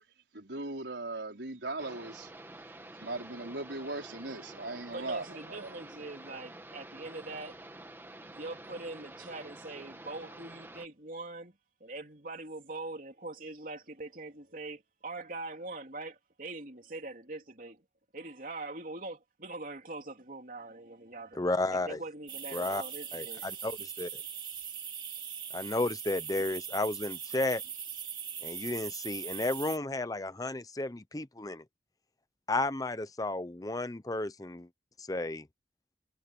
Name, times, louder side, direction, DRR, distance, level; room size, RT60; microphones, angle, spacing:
voice 1, 0.3-2.3 2.6-5.7, right 2 dB, 85° right, 4.6 m, -39 dB
sound 1, 1.8-10.9, right 1 dB, 15° right, 1.6 m, -49 dB
voice 2, 4.9-7.6 8.2-17.8 18.1-23.6, right 2 dB, 50° right, 3.3 m, -43 dB
voice 3, 21.4-22.0 22.5-22.8 23.1-24.2 25.5-27.6 28.4-31.6 32.5-34.7 35.0-35.5, left 2 dB, 20° left, 0.7 m, -33 dB
sound 2, 22.3-29.8, right 8 dB, 30° right, 2.5 m, -41 dB
head